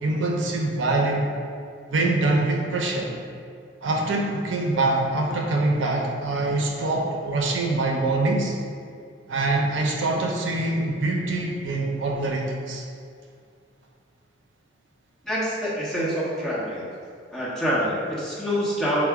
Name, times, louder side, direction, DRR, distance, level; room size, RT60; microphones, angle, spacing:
voice 1, 0.0-1.3 1.9-3.1 3.8-8.6 9.3-12.8, right 2 dB, 75° right, 0 dB, 0.5 m, -24 dB
voice 2, 15.2-16.9 17.3-19.0, equal, 5° left, -9 dB, 0.9 m, -26 dB
4.6 x 2.0 x 4.6 m, 2.3 s
head